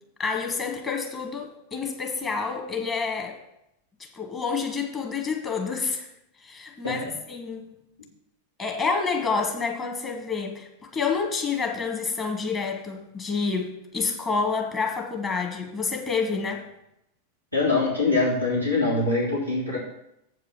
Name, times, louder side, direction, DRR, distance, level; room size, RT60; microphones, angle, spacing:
voice 1, 0.2-3.4 4.1-6.1 6.4-7.8 8.6-10.7 10.9-16.6, left 5 dB, 25° left, 2 dB, 1.5 m, -28 dB
voice 2, 17.5-19.8, left 3 dB, 85° left, -6 dB, 2.7 m, -23 dB
7.8 x 4.8 x 7.2 m, 0.82 s
figure-of-eight pair, 90°, 0 cm